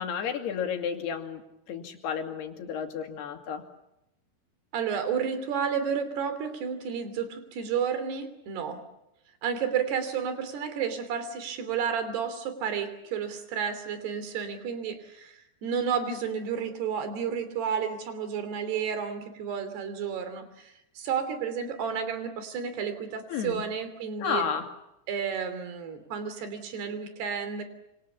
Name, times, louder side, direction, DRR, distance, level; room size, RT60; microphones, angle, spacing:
voice 1, 0.0-1.4 1.7-3.6 23.3-23.6 24.2-24.7, left 7 dB, 80° left, 4 dB, 4.5 m, -32 dB
voice 2, 4.7-8.8 9.4-24.5 25.1-27.6, right 7 dB, 80° right, 10 dB, 5.0 m, -31 dB
27.5 x 26.5 x 7.1 m, 0.87 s
omnidirectional pair, 4.7 m